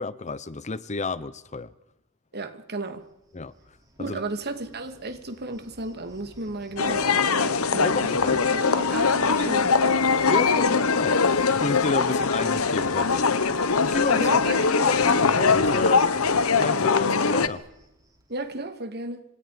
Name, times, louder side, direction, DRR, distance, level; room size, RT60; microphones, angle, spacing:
voice 1, 0.0-1.7 3.3-3.5 4.0-4.2 6.9-7.0 7.8-8.4 10.3-13.3 13.8-14.3 14.8-16.1 16.6-17.6, left 3 dB, 35° left, 0.9 m, -30 dB
voice 2, 2.3-3.0 4.0-10.0 14.1-14.9 18.3-19.2, right 2 dB, 50° right, 2.7 m, -34 dB
Cricket, 2.9-18.6, equal, 20° right, 6.8 m, -52 dB
sound 1, 6.8-17.5, left 5 dB, 90° left, 1.3 m, -22 dB
29.0 x 26.5 x 5.2 m
head